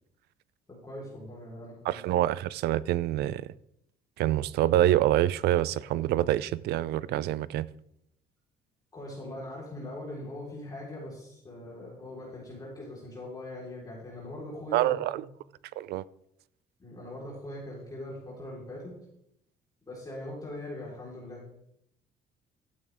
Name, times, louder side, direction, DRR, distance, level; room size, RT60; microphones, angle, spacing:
voice 1, 0.7-2.0 8.9-15.3 16.8-18.9 19.9-21.4, left 1 dB, 20° left, 3.9 m, -41 dB
voice 2, 1.9-3.5 4.2-7.7 14.7-15.2 15.8-16.0, right 14 dB, 75° right, 0.4 m, -26 dB
12.5 x 8.7 x 3.5 m
cardioid pair, 110°, 17 cm